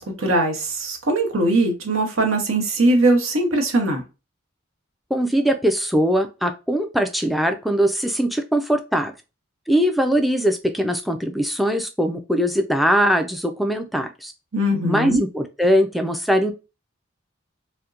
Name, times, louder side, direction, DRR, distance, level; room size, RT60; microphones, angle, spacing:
voice 1, 0.0-4.0 14.5-15.2, right 1 dB, 80° right, 1.0 m, -20 dB
voice 2, 5.1-9.1 9.7-14.3 14.8-16.5, equal, ahead, 0.3 m, -21 dB
4.2 x 2.1 x 2.4 m
head